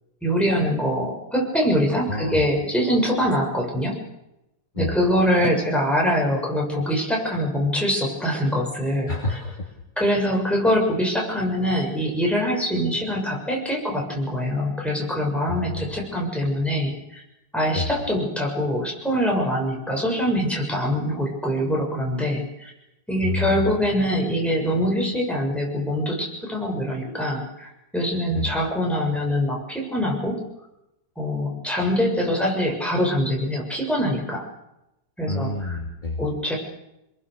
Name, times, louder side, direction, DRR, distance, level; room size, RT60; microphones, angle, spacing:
voice 1, 0.2-4.0 4.8-9.1 10.0-17.2 17.5-22.7 23.1-30.4 31.2-34.5 35.2-35.5 36.2-36.6, equal, ahead, -2 dB, 7.0 m, -24 dB
voice 2, 2.1-2.4 4.7-4.9 9.1-9.7 15.5-16.0 17.7-17.9 23.2-23.7 28.3-28.5 35.3-36.2, left 3 dB, 25° left, 1 dB, 2.8 m, -28 dB
26.5 x 22.0 x 6.9 m, 0.90 s
omnidirectional pair, 1.9 m